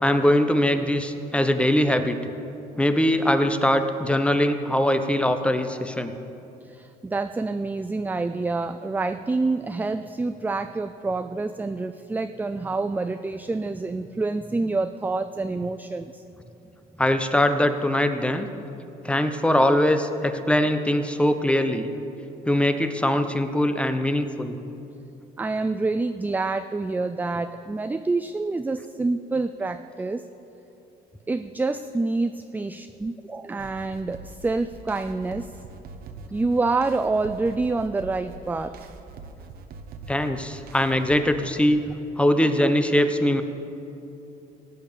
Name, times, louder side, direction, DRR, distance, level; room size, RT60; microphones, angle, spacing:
voice 1, 0.0-2.2 2.8-6.1 17.0-18.5 19.0-21.9 22.5-24.5 40.1-41.8 42.2-43.4, left 1 dB, 5° left, 8 dB, 0.9 m, -22 dB
voice 2, 6.7-16.2 25.4-30.2 31.3-35.5 36.3-38.9, right 3 dB, 10° right, 9 dB, 0.4 m, -27 dB
sound 1, 33.6-41.2, right 4 dB, 65° right, 1.1 m, -43 dB
17.0 x 8.6 x 6.9 m, 2.8 s
cardioid pair, 110°, 17 cm